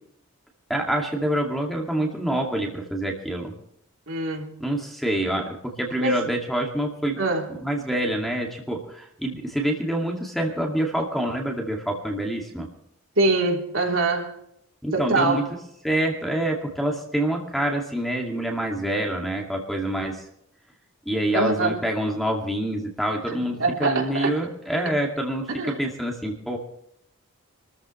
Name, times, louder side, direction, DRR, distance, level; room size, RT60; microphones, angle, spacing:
voice 1, 0.7-3.5 4.6-7.2 7.6-12.7 14.8-15.4 15.8-20.2 21.1-26.6, right 1 dB, ahead, 2.3 m, -26 dB
voice 2, 4.1-4.6 6.0-6.2 7.2-7.5 13.2-14.3 14.9-15.5 21.3-21.8 23.6-24.4 25.5-25.8, right 3 dB, 65° right, 3.5 m, -23 dB
25.5 x 14.0 x 3.2 m
head